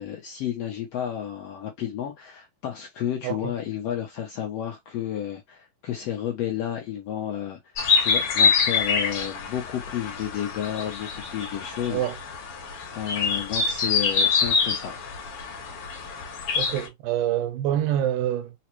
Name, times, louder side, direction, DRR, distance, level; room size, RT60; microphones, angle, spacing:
voice 1, 0.0-7.6 8.0-12.0 12.9-14.9, left 10 dB, 75° left, 1.4 m, -31 dB
sound 1, 7.8-16.9, left 5 dB, 55° left, 1.8 m, -26 dB
voice 2, 16.6-18.5, right 11 dB, 85° right, 2.1 m, -26 dB
5.0 x 2.1 x 2.9 m
omnidirectional pair, 3.6 m